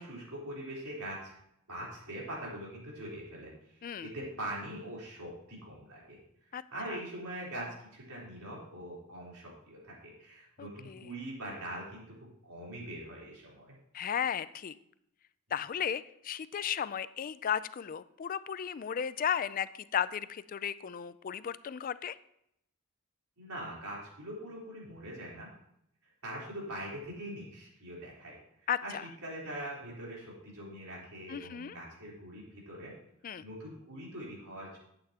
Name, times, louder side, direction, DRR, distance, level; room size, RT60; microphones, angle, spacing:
voice 1, 0.0-1.4 1.7-6.2 6.5-13.7 23.4-25.5 26.2-28.3 28.8-32.9 33.4-34.8, right 1 dB, 85° right, -5 dB, 3.9 m, -43 dB
voice 2, 10.6-11.1 13.9-14.7 15.5-22.2 28.7-29.0 31.3-31.8 33.2-33.5, left 8 dB, 40° left, 16 dB, 0.3 m, -35 dB
11.5 x 8.8 x 2.9 m, 0.77 s
head